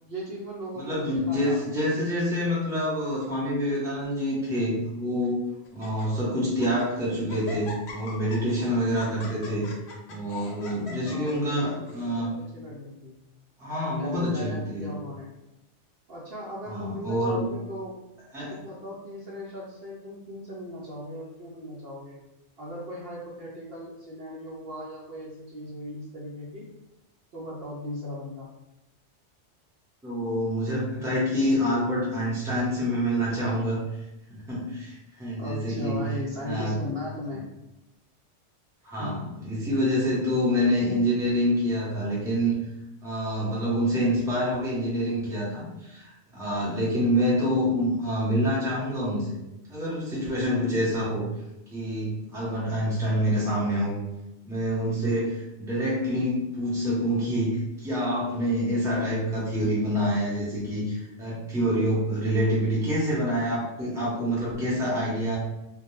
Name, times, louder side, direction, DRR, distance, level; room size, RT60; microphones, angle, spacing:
voice 1, 0.1-1.6 11.1-13.1 14.0-15.3 16.1-17.9 18.5-22.2 22.6-26.7 27.3-28.5 30.9-31.1 35.4-37.5 39.0-39.2, left 1 dB, 60° right, -5 dB, 0.8 m, -38 dB
voice 2, 0.7-5.4 5.7-9.7 10.1-12.4 13.6-14.9 16.6-17.5 18.3-18.6 30.0-33.8 34.3-36.0 36.4-36.7 38.8-42.6 43.0-49.4 49.7-51.3 51.7-54.0 54.4-65.4, equal, 5° right, -7 dB, 0.6 m, -27 dB
Laughter, 1.0-1.9 2.6-2.9 3.2-3.3 4.1-4.7 5.2-5.3 5.7-6.1 6.5-6.9 7.3-12.1, left 2 dB, 65° left, 0.8 m, -43 dB
2.2 x 2.2 x 3.0 m, 0.91 s
omnidirectional pair, 1.3 m